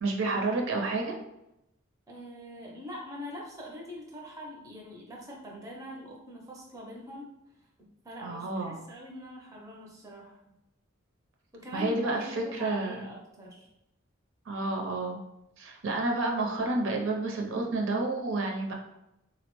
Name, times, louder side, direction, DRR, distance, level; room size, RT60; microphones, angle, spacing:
voice 1, 0.0-1.2 8.2-8.8 11.7-13.0 14.5-15.2 15.6-18.7, right 2 dB, 60° right, 1 dB, 0.5 m, -30 dB
voice 2, 2.1-10.4 11.5-13.7, left 1 dB, 15° right, -2 dB, 0.5 m, -44 dB
3.8 x 2.0 x 2.9 m, 0.87 s
head